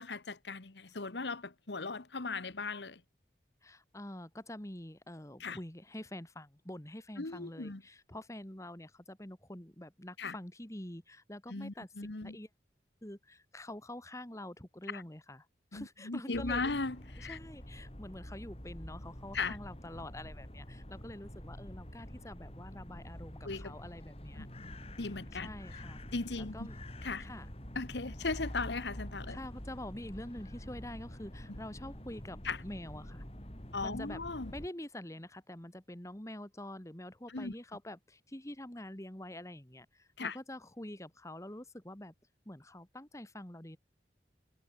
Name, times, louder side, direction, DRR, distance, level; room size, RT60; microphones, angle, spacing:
voice 1, 0.0-3.0 5.4-5.6 7.2-7.8 10.2-10.3 11.5-12.4 14.9-15.0 15.7-17.4 19.3-19.6 23.4-23.7 24.4-24.7 25.0-25.5 26.1-26.7 27.0-27.3 27.7-29.4 31.5-31.6 32.4-32.6 33.7-34.5 37.3-37.5 40.2-40.4, left 3 dB, 75° left, 1.4 m, -37 dB
voice 2, 3.6-12.5 13.0-15.5 15.7-16.7 17.2-24.5 25.3-26.0 26.4-26.8 27.2-27.5 29.3-33.2 33.8-34.2 34.5-42.1 42.5-43.8, left 1 dB, 15° left, 1.8 m, -46 dB
sound 1, 16.3-34.7, equal, 35° left, 4.6 m, -47 dB
head